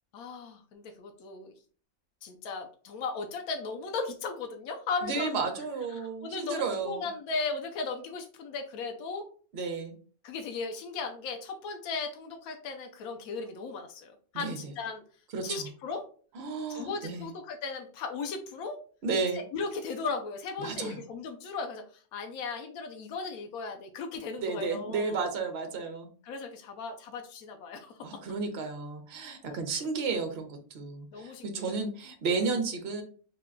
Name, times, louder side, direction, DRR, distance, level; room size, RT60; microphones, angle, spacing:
voice 1, 0.1-1.5 2.2-5.3 6.0-9.2 10.2-15.0 15.4-16.0 16.7-18.8 19.3-21.8 22.1-25.2 26.3-27.9 29.7-29.8 31.1-31.8 32.4-32.5, left 4 dB, 85° left, 4 dB, 1.1 m, -36 dB
voice 2, 5.0-7.1 9.5-9.9 14.3-14.6 15.3-15.7 16.3-17.3 19.0-19.4 20.6-21.0 24.4-26.1 28.0-33.0, right 4 dB, 55° right, 4 dB, 0.9 m, -32 dB
4.0 x 2.2 x 3.7 m, 0.42 s
omnidirectional pair, 1.5 m